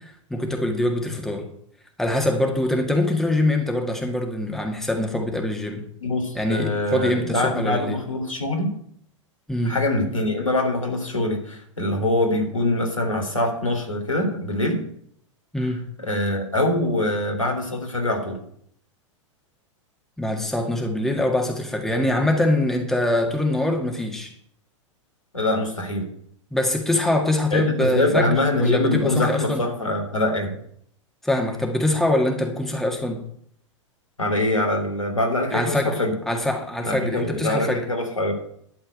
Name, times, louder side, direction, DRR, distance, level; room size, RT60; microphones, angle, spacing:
voice 1, 0.0-1.5 2.0-5.8 6.4-8.0 9.5-9.8 15.5-15.9 20.2-24.3 26.5-29.6 31.2-33.3 35.5-36.0 36.3-37.9, left 1 dB, ahead, 2 dB, 1.8 m, -23 dB
voice 2, 6.0-8.7 9.6-14.8 15.6-15.7 16.0-18.4 25.3-26.0 27.5-30.5 34.2-36.2 36.8-38.3, left 1 dB, 85° left, 1 dB, 3.2 m, -24 dB
12.0 x 4.5 x 8.4 m, 0.66 s
figure-of-eight pair, 95°, 16 cm